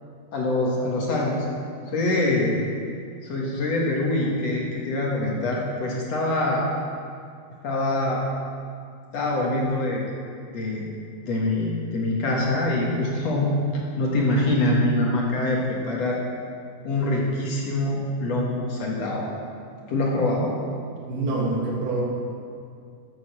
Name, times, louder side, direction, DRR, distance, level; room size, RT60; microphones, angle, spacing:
voice 1, 0.3-1.4 1.9-2.6 3.2-6.7 7.6-8.2 9.1-10.1 10.5-10.9 11.2-16.2 16.8-19.3 19.9-20.5, left 1 dB, 55° left, -3 dB, 2.1 m, -24 dB
voice 2, 21.1-22.0, right 2 dB, 75° right, -5 dB, 4.2 m, -25 dB
12.5 x 7.9 x 7.3 m, 2.3 s
omnidirectional pair, 4.6 m